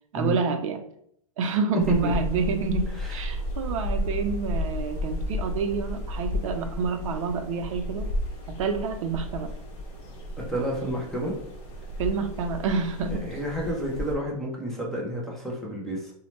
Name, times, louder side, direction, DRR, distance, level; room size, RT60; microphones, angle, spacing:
voice 1, 0.1-0.8 1.4-8.1 8.5-9.5 12.0-13.2, right 5 dB, 60° right, 6 dB, 0.4 m, -28 dB
sound 1, 1.8-14.1, left 1 dB, 55° left, 0.8 m, -33 dB
voice 2, 10.4-11.4 13.2-16.1, equal, ahead, -4 dB, 0.5 m, -30 dB
2.8 x 2.0 x 3.0 m, 0.69 s
hypercardioid pair, 140°, 19 cm